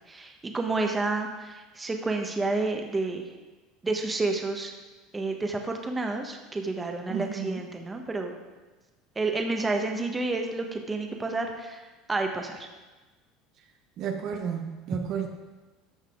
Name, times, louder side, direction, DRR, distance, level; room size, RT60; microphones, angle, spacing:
voice 1, 0.1-3.3 3.8-4.7 5.1-8.3 9.1-11.8 12.1-12.7, right 3 dB, 15° right, 3 dB, 1.1 m, -30 dB
voice 2, 7.1-7.5 14.0-15.3, right 7 dB, 50° right, 4 dB, 0.9 m, -32 dB
13.5 x 5.8 x 3.7 m, 1.2 s
supercardioid pair, 130°, 0 cm